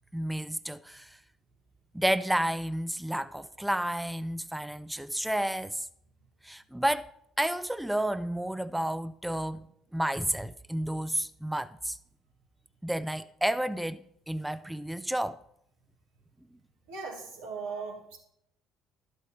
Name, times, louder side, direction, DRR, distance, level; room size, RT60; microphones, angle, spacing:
voice 1, 0.1-1.2 1.9-5.9 6.4-7.0 7.4-9.7 9.9-12.0 12.8-15.4, right 1 dB, 5° right, 0.4 m, -31 dB
voice 2, 16.9-18.2, right 4 dB, 85° right, 2.2 m, -38 dB
11.5 x 7.8 x 4.3 m
hypercardioid pair, 60°, 0 cm